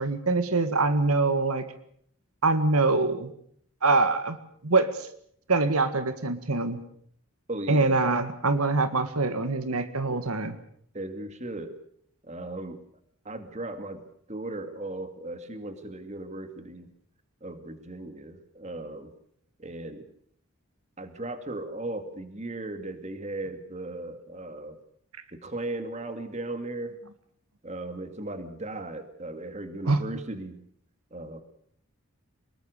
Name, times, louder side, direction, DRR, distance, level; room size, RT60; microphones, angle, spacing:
voice 1, 0.0-1.7 2.4-3.3 3.8-4.4 4.6-5.1 5.5-6.8 7.7-10.6 29.9-30.0, right 3 dB, 85° right, 11 dB, 1.9 m, -24 dB
voice 2, 7.5-8.0 10.1-10.2 10.9-11.8 12.2-12.8 13.2-14.0 14.3-16.9 17.4-19.1 19.6-20.1 21.0-24.8 25.3-26.9 27.6-30.6 31.1-31.4, right 2 dB, 30° right, 8 dB, 2.3 m, -37 dB
24.5 x 21.0 x 6.6 m, 0.65 s
head